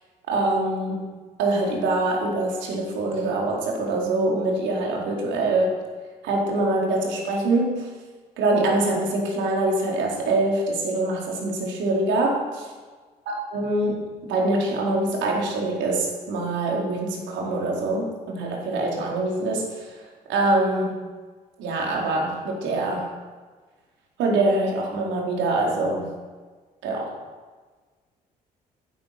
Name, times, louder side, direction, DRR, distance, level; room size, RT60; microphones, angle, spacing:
voice 1, 0.3-1.0 1.4-5.8 6.2-7.9 8.4-12.7 13.3-20.0 20.3-21.0 21.6-23.1 24.2-26.1 26.8-27.2, right 2 dB, 60° right, -1 dB, 4.3 m, -24 dB
15.0 x 10.5 x 6.1 m, 1.4 s
figure-of-eight pair, 50°, 21 cm